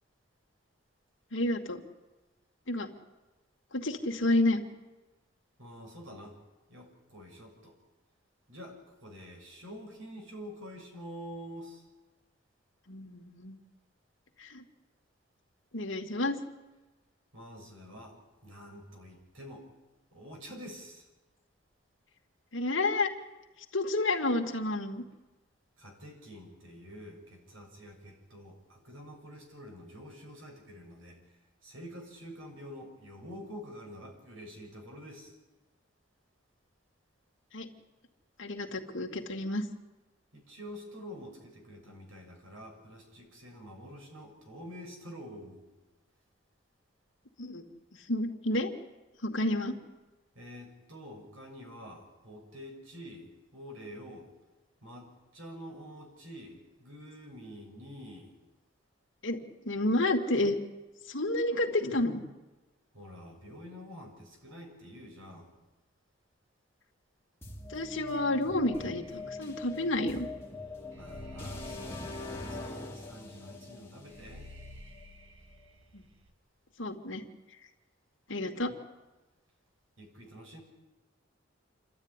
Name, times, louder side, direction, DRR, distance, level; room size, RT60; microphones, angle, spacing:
voice 1, 1.3-1.8 2.7-2.9 3.7-4.6 12.9-13.6 14.4-14.6 15.7-16.4 22.5-23.1 23.7-25.0 37.5-37.7 38.4-39.6 47.4-47.6 48.1-48.7 49.2-49.7 59.2-59.4 59.7-60.6 61.1-62.2 67.7-70.3 75.9-76.0 76.8-77.2 78.3-78.7, left 2 dB, 70° left, 3 dB, 2.3 m, -30 dB
voice 2, 5.6-6.4 6.7-7.8 8.5-11.9 17.3-19.7 20.1-21.0 25.8-31.2 31.6-35.3 40.3-45.6 50.3-54.3 54.8-58.4 62.9-65.5 70.9-74.5 80.0-80.6, equal, 85° right, 2 dB, 6.5 m, -47 dB
sound 1, 67.4-75.3, left 2 dB, 15° left, 2.5 m, -43 dB
sound 2, 68.7-76.3, left 1 dB, 70° right, 1.9 m, -52 dB
28.0 x 13.0 x 9.9 m, 1.1 s
head